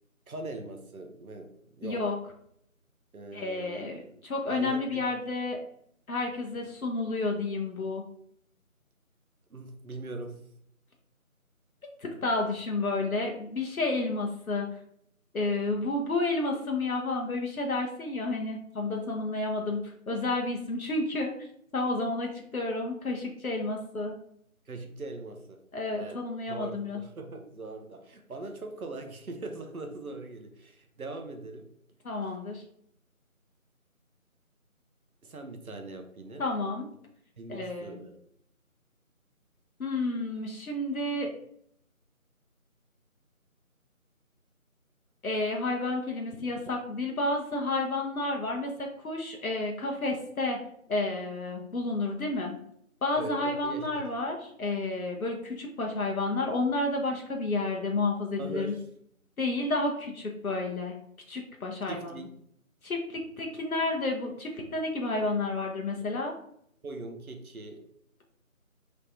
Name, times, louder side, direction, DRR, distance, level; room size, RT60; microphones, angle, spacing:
voice 1, 0.3-2.0 3.1-4.2 4.5-5.0 9.5-10.4 24.7-25.6 26.0-26.2 26.5-31.7 35.2-36.4 37.4-38.2 53.2-54.1 58.4-58.8 61.9-62.3 66.8-67.8, right 2 dB, 75° right, 5 dB, 0.8 m, -41 dB
voice 2, 1.8-2.1 3.3-5.6 6.1-8.0 12.0-14.7 15.3-21.5 21.7-24.1 25.7-27.0 32.0-32.6 36.4-36.9 37.5-38.0 39.8-41.3 45.2-50.6 50.9-52.6 53.0-58.7 59.4-61.0 61.3-62.2 62.8-66.3, left 2 dB, 75° left, 1 dB, 0.8 m, -31 dB
3.4 x 3.2 x 2.6 m, 0.70 s
figure-of-eight pair, 170°, 43 cm